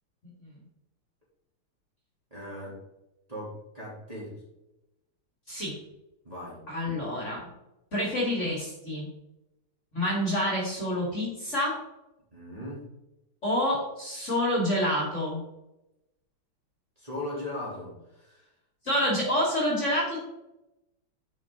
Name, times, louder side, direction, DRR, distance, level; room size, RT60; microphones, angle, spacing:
voice 1, 2.3-2.8 3.3-4.4 6.2-6.6 12.3-12.8 17.0-18.5, left 1 dB, 15° right, -8 dB, 3.3 m, -38 dB
voice 2, 6.7-7.4 7.9-9.1 9.9-11.8 13.4-15.4 18.8-20.2, equal, 35° left, -3 dB, 2.7 m, -27 dB
10.5 x 5.6 x 4.0 m, 0.93 s
omnidirectional pair, 2.4 m